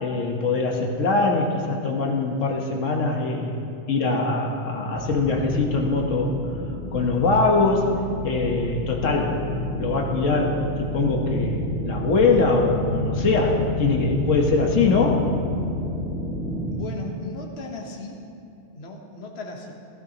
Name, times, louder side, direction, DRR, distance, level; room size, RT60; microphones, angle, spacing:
voice 1, 0.0-3.6 3.9-6.4 6.9-7.9 8.2-9.4 9.8-15.3, left 3 dB, 85° left, 1 dB, 1.5 m, -22 dB
sound 1, 4.9-16.7, left 1 dB, 5° right, 2.3 m, -29 dB
voice 2, 16.7-18.2 18.7-19.7, left 3 dB, 60° left, 1 dB, 1.3 m, -36 dB
15.5 x 15.0 x 2.9 m, 2.4 s
omnidirectional pair, 1.3 m